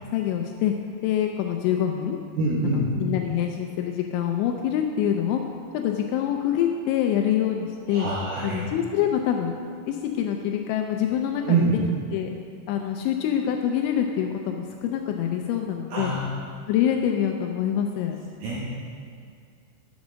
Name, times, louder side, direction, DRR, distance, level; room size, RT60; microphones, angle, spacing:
voice 1, 0.1-0.7 1.0-2.2 2.6-5.4 5.7-8.1 8.4-9.5 9.9-11.7 12.1-12.3 12.7-16.1 16.7-18.2, left 9 dB, 85° left, 3 dB, 2.7 m, -25 dB
voice 2, 2.4-2.9 7.9-8.6 11.4-11.8 15.9-16.3 18.4-18.7, right 3 dB, 75° right, -6 dB, 2.2 m, -25 dB
7.6 x 7.2 x 6.2 m, 2.2 s
omnidirectional pair, 5.7 m